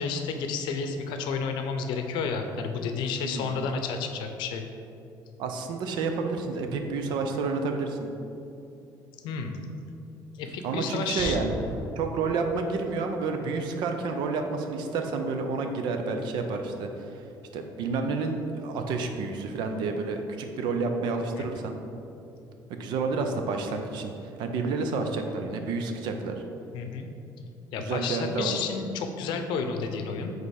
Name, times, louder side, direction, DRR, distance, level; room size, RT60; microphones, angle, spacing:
voice 1, 0.0-4.6 9.2-9.5 10.4-11.4 21.4-21.5 26.7-27.1 27.7-30.3, left 5 dB, 80° left, 5 dB, 0.6 m, -31 dB
voice 2, 3.2-3.6 5.4-8.1 10.6-11.6 12.0-17.3 17.5-21.8 22.7-26.4 27.8-28.6, right 4 dB, 70° right, 5 dB, 0.6 m, -30 dB
Explosion, 11.2-13.0, left 1 dB, 20° right, 1.2 m, -38 dB
5.4 x 4.0 x 4.8 m, 2.7 s
cardioid pair, 160°, 8 cm